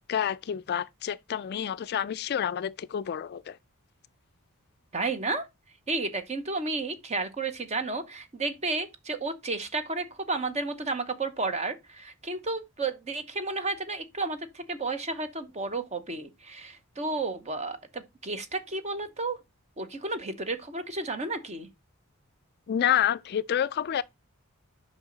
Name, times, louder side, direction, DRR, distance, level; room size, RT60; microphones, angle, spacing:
voice 1, 0.0-3.6 22.7-24.0, left 9 dB, 45° left, 0.3 m, -28 dB
voice 2, 4.9-5.5 5.9-19.4 19.8-21.7, right 3 dB, 30° right, 0.9 m, -32 dB
8.0 x 5.5 x 3.9 m
head